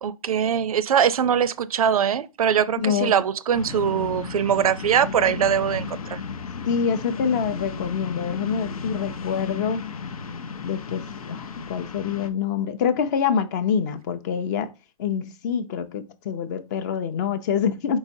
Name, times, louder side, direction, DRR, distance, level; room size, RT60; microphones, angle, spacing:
voice 1, 0.0-6.2, right 8 dB, 80° right, 0.4 m, -22 dB
voice 2, 2.8-3.1 6.7-9.8 10.6-14.7 15.0-18.0, left 7 dB, 30° left, 0.5 m, -26 dB
sound 1, 3.5-12.3, left 5 dB, 85° left, 0.6 m, -34 dB
4.5 x 4.0 x 2.6 m
hypercardioid pair, 145°, 18 cm